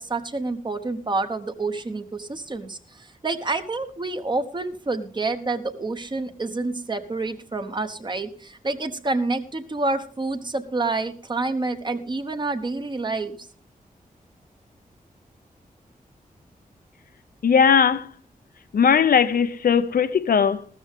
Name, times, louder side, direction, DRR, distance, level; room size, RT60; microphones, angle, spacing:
voice 1, 0.0-13.5, right 3 dB, 30° right, 1.1 m, -28 dB
voice 2, 17.4-18.1 18.7-20.7, left 7 dB, 85° left, 0.8 m, -18 dB
14.5 x 13.0 x 3.6 m
wide cardioid pair, 150°, 15 cm